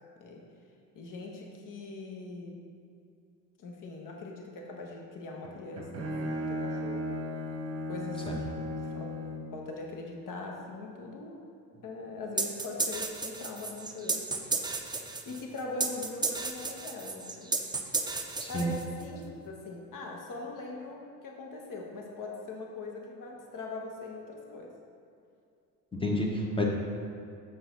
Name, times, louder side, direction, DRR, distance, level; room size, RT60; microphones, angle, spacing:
voice 1, 0.9-2.6 3.6-7.1 7.9-11.4 11.8-14.4 15.2-17.5 18.5-24.7, left 3 dB, 40° left, 1 dB, 1.5 m, -41 dB
Bowed string instrument, 5.4-9.6, left 1 dB, 30° right, 1.4 m, -36 dB
sound 1, 12.4-19.1, right 3 dB, 10° right, 0.6 m, -33 dB
voice 2, 18.4-18.7 25.9-26.6, left 1 dB, 10° left, -1 dB, 1.4 m, -29 dB
7.8 x 5.5 x 4.0 m, 2.5 s
figure-of-eight pair, 60°, 49 cm